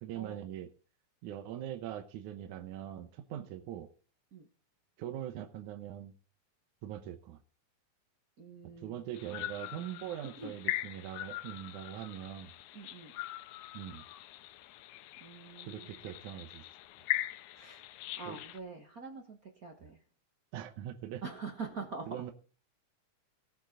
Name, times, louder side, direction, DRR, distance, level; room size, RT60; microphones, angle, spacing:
voice 1, 0.0-0.7 1.2-3.9 5.0-6.1 6.8-7.4 8.6-12.5 13.7-14.0 15.7-16.7 18.3-18.4 20.5-21.2 22.1-22.3, right 11 dB, 80° right, 7 dB, 2.3 m, -42 dB
voice 2, 8.4-9.0 10.4-10.5 12.7-13.1 15.2-16.0 17.5-17.9 18.2-20.0 21.2-22.2, right 4 dB, 45° right, 4 dB, 1.1 m, -44 dB
sound 1, 9.1-18.6, left 15 dB, 80° left, 2.0 m, -41 dB
18.0 x 7.2 x 3.8 m, 0.38 s
omnidirectional pair, 3.5 m